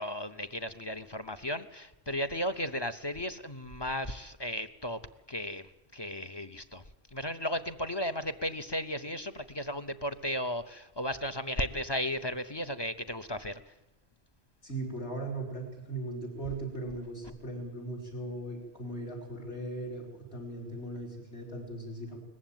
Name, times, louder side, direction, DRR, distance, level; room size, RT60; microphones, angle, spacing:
voice 1, 0.0-5.0 5.3-5.6 5.9-6.8 7.1-13.7, equal, 25° left, 10 dB, 0.6 m, -35 dB
voice 2, 14.6-22.2, right 2 dB, 55° left, 3 dB, 5.2 m, -38 dB
20.0 x 15.0 x 9.2 m, 1.1 s
omnidirectional pair, 1.3 m